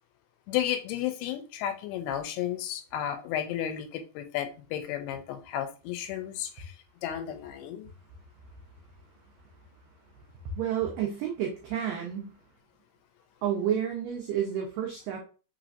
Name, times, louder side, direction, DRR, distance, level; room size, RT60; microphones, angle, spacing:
voice 1, 0.5-7.9, left 10 dB, 85° left, 8 dB, 2.5 m, -33 dB
voice 2, 10.5-12.3 13.4-15.2, right 9 dB, 85° right, 0 dB, 1.9 m, -30 dB
6.0 x 3.3 x 2.5 m, 0.35 s
omnidirectional pair, 4.8 m